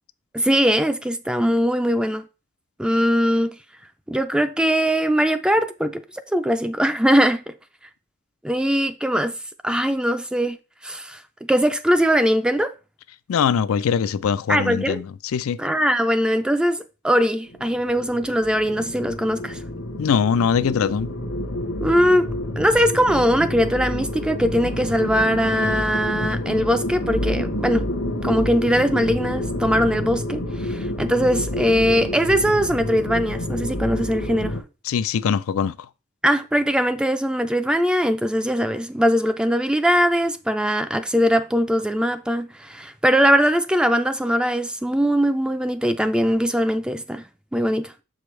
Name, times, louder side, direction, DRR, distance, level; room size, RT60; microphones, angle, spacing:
voice 1, 0.3-2.3 2.8-3.6 4.1-7.5 8.4-9.3 9.6-10.6 10.8-11.2 11.5-12.7 14.5-15.0 15.6-19.6 21.8-22.3 22.6-27.9 28.2-34.6 36.2-47.3 47.5-47.9, equal, 5° right, 0.3 m, -21 dB
voice 2, 13.3-15.6 20.0-21.1 34.9-35.7, left 7 dB, 90° left, 0.4 m, -22 dB
sound 1, 17.5-34.6, left 1 dB, 70° left, 0.9 m, -28 dB
6.9 x 4.9 x 3.2 m
head